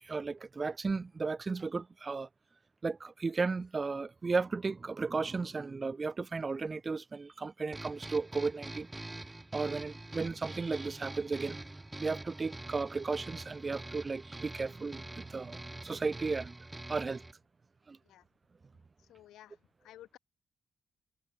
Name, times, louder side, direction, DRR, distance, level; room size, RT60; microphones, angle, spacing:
voice 1, 0.0-2.3 2.8-8.9 9.5-11.6 12.0-16.5 16.9-17.3 17.9-18.0, right 4 dB, 40° right, 3.2 m, -34 dB
sound 1, 7.7-17.3, right 2 dB, 20° right, 3.3 m, -45 dB
voice 2, 19.1-19.6 19.8-20.2, left 13 dB, 80° left, 3.7 m, -53 dB
hypercardioid pair, 45°, 0 cm